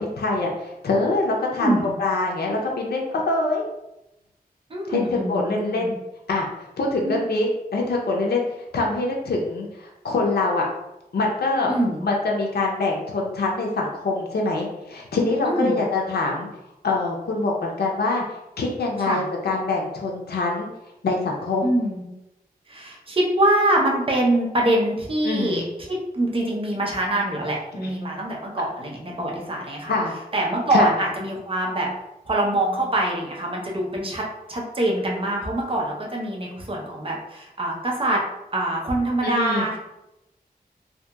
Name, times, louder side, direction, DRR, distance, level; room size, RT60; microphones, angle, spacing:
voice 1, 0.0-3.7 4.9-6.0 6.3-8.4 8.7-10.7 11.1-11.7 12.0-16.5 16.8-18.2 18.6-20.7 21.0-21.7 25.2-25.7 27.8-27.9 29.9-30.2 30.7-31.0 39.2-39.7, left 3 dB, 85° left, -1 dB, 0.5 m, -24 dB
voice 2, 1.6-1.9 4.7-5.9 7.0-7.1 11.7-12.0 15.5-15.8 19.0-19.3 21.6-22.0 22.7-25.6 25.9-29.9 30.3-31.9 32.3-34.2 34.5-38.2 38.5-39.9, right 1 dB, 35° right, -2 dB, 0.6 m, -24 dB
2.8 x 2.5 x 2.3 m, 0.90 s
wide cardioid pair, 70°, 16 cm